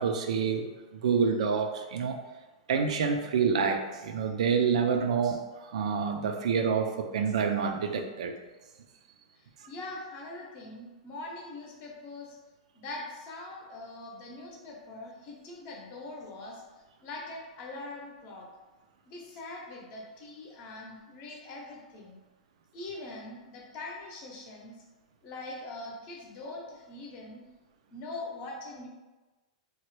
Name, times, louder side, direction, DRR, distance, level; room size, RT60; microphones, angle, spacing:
voice 1, 0.0-2.2 2.7-8.3, right 6 dB, 75° right, 5 dB, 0.3 m, -28 dB
voice 2, 9.4-12.4 12.7-16.6 17.0-18.5 19.1-22.2 22.7-24.8 25.2-27.4 27.9-28.9, left 2 dB, 40° left, -1 dB, 0.7 m, -42 dB
3.0 x 2.1 x 3.1 m, 1.2 s
hypercardioid pair, 135°, 4 cm